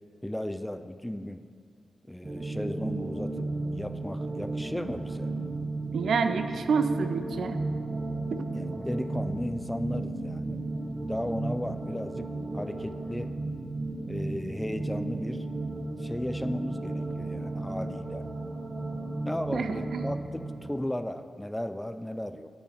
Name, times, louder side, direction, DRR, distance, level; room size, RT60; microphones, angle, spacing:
voice 1, 0.2-1.5 2.1-5.3 8.5-10.6 11.1-13.4 14.0-15.5 16.0-18.3 19.3-22.5, left 1 dB, 5° left, 10 dB, 0.4 m, -35 dB
sound 1, 2.2-20.7, right 2 dB, 35° right, 0.8 m, -34 dB
voice 2, 5.9-7.6 8.3-8.5 19.5-20.1, right 5 dB, 80° right, 9 dB, 0.5 m, -28 dB
9.3 x 6.3 x 4.9 m, 2.1 s
wide cardioid pair, 95°, 0 cm